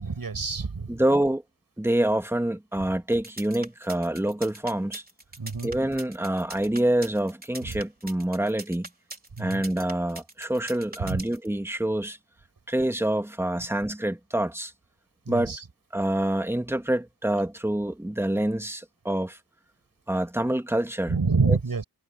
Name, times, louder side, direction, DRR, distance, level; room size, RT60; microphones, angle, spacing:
voice 1, 0.0-1.0 5.4-5.7 7.6-7.8 9.4-9.6 11.0-11.2 15.3-15.6 21.1-21.8, right 4 dB, 55° right, 8.0 m, -27 dB
voice 2, 0.9-1.4 1.8-5.0 5.6-8.9 9.4-12.2 12.7-14.7 15.3-15.5 15.9-19.4 20.1-21.2 21.5-21.6, right 1 dB, 5° right, 1.8 m, -26 dB
sound 1, 3.1-11.5, right 2 dB, 20° right, 4.1 m, -42 dB
wide cardioid pair, 85°, 41 cm